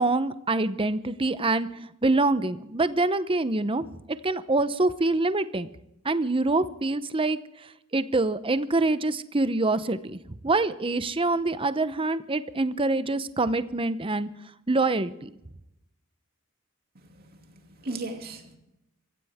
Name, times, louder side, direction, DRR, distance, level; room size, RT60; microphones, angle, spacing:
voice 1, 0.0-3.8 4.2-5.7 6.0-14.3 14.7-15.3, right 2 dB, 25° right, 13 dB, 0.8 m, -25 dB
voice 2, 16.9-18.6, right 2 dB, 45° right, 4 dB, 2.6 m, -38 dB
24.5 x 15.5 x 3.6 m, 0.86 s
head